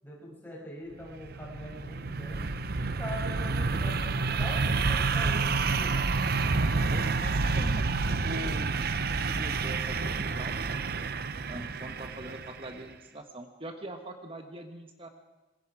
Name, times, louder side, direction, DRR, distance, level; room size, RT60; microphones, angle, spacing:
voice 1, 0.0-2.4 2.8-6.1 11.3-11.7, equal, 10° left, -4 dB, 7.0 m, -43 dB
sound 1, 1.0-12.7, right 4 dB, 50° right, 0.8 m, -29 dB
voice 2, 6.9-10.8 11.5-15.1, right 1 dB, 30° right, 5 dB, 1.3 m, -43 dB
25.5 x 21.5 x 4.9 m, 1.2 s
head